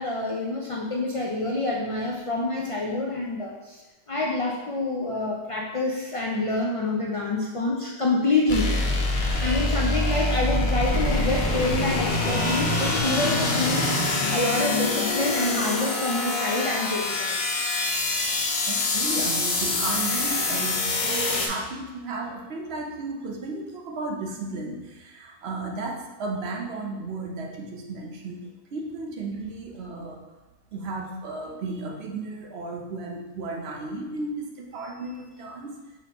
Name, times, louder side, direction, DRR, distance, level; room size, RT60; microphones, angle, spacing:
voice 1, 0.0-3.8 4.1-8.7 9.4-17.4, left 2 dB, 45° left, -3 dB, 0.4 m, -27 dB
sound 1, 8.5-21.5, left 2 dB, 75° left, 0.9 m, -25 dB
voice 2, 18.7-28.4 28.7-30.2 30.7-35.7, right 3 dB, 80° right, 1 dB, 0.9 m, -34 dB
4.9 x 3.5 x 2.9 m, 1.1 s
omnidirectional pair, 1.1 m